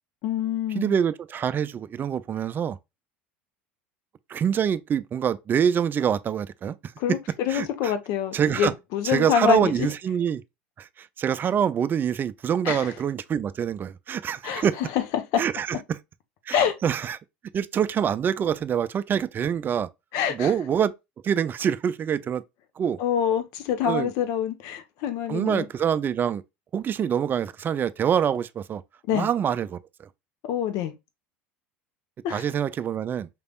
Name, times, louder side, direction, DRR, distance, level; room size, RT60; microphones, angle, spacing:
voice 1, 0.2-1.0 7.0-9.9 12.6-12.9 14.4-15.4 16.5-16.8 20.1-20.5 23.0-25.7 29.1-29.3 30.4-30.9 32.2-32.5, left 9 dB, 60° left, 1.0 m, -26 dB
voice 2, 0.7-2.8 4.3-6.8 7.1-7.2 7.5-7.9 8.3-8.7 9.0-10.4 10.8-14.8 15.4-16.0 16.5-17.2 17.5-19.9 20.3-20.9 21.2-22.4 22.8-23.0 23.8-24.1 25.3-26.4 26.7-28.8 29.1-30.1 32.3-33.3, right 8 dB, 35° right, 0.4 m, -25 dB
5.1 x 3.4 x 2.4 m
hypercardioid pair, 85°, 6 cm